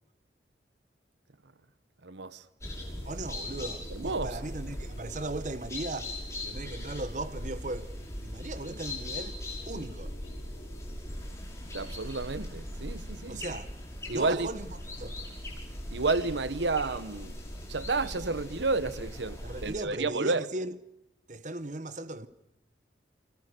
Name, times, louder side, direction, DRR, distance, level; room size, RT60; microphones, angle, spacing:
voice 1, 2.0-2.5 3.9-4.4 11.7-13.4 14.1-14.5 15.9-17.4 17.7-20.4, right 3 dB, 80° right, 1.0 m, -31 dB
sound 1, 2.6-19.7, left 1 dB, 15° left, 5.9 m, -40 dB
voice 2, 3.0-6.1 6.4-7.9 8.2-9.4 9.7-10.1 13.3-13.7 14.1-14.7 15.0-15.2 19.4-20.8 21.3-22.3, right 2 dB, 45° right, 1.1 m, -37 dB
29.0 x 25.5 x 6.8 m
head